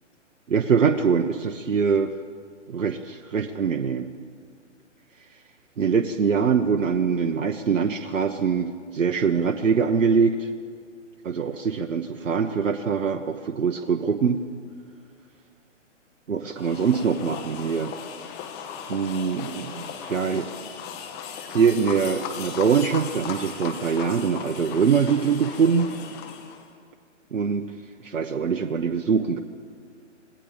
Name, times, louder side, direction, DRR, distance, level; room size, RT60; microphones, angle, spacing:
voice 1, 0.5-2.1 2.7-4.1 5.8-10.5 11.2-14.4 16.3-17.9 18.9-20.5 21.5-25.9 27.3-27.6 28.0-29.4, right 6 dB, 80° right, 7 dB, 1.2 m, -23 dB
sound 1, 16.6-26.7, left 7 dB, 25° left, 2.3 m, -37 dB
27.0 x 18.5 x 5.2 m, 2.1 s
hypercardioid pair, 130°, 38 cm